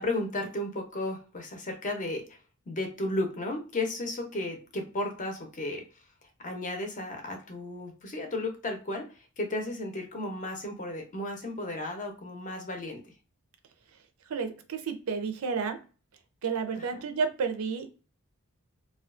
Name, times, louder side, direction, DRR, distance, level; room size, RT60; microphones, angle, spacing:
voice 1, 0.0-2.4 2.7-5.8 6.4-13.1 16.7-17.0, left 2 dB, 35° left, 3 dB, 0.7 m, -34 dB
voice 2, 14.3-15.8 16.4-17.9, right 5 dB, 70° right, 7 dB, 0.5 m, -31 dB
2.4 x 2.3 x 2.4 m, 0.35 s
head